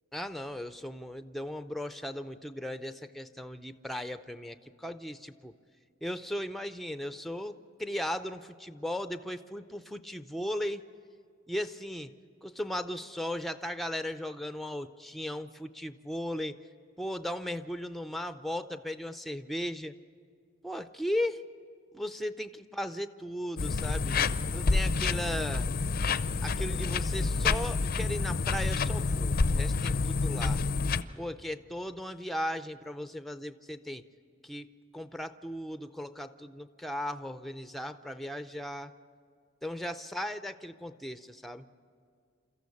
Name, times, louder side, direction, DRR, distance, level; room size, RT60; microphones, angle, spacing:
voice 1, 0.1-5.5 6.0-10.8 11.5-12.1 12.4-16.6 17.0-19.9 20.6-21.4 21.9-24.2 24.5-25.7 26.4-30.6 31.2-34.0 34.4-38.9 39.6-41.7, equal, ahead, 10 dB, 0.5 m, -37 dB
sound 1, 23.6-31.0, left 4 dB, 50° left, 0.5 m, -28 dB
28.0 x 14.0 x 8.4 m, 2.1 s
head